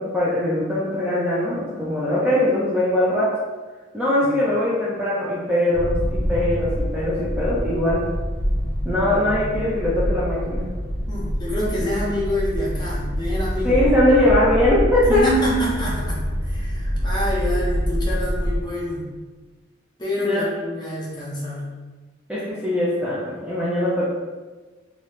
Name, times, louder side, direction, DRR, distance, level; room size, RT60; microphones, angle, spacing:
voice 1, 0.0-3.3 3.9-8.0 8.8-10.6 13.6-15.3 20.2-20.4 22.3-24.0, left 1 dB, 5° right, -8 dB, 0.5 m, -21 dB
sound 1, 5.7-18.6, equal, 40° right, 0.8 m, -25 dB
voice 2, 11.1-13.8 15.1-19.1 20.0-21.7, equal, 20° left, -5 dB, 0.8 m, -27 dB
3.0 x 2.8 x 3.1 m, 1.3 s
head